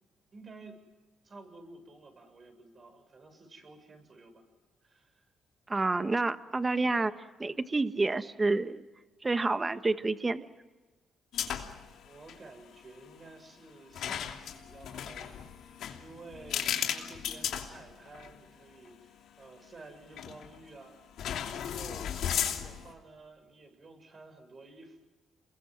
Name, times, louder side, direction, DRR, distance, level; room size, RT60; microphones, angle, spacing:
voice 1, 0.3-0.8 1.2-4.5 4.8-5.3 12.0-21.0 21.5-25.0, right 3 dB, 40° right, 6 dB, 7.2 m, -52 dB
voice 2, 5.7-7.1 7.4-8.8 9.2-10.5, right 3 dB, 25° right, 10 dB, 1.3 m, -29 dB
sound 1, 11.3-11.9 12.1-12.4 13.9-18.3 18.9-19.0 20.2-20.6 21.2-22.9, left 9 dB, 75° left, 2.8 m, -35 dB
28.0 x 22.5 x 7.7 m, 1.2 s
cardioid pair, 90°, 0 cm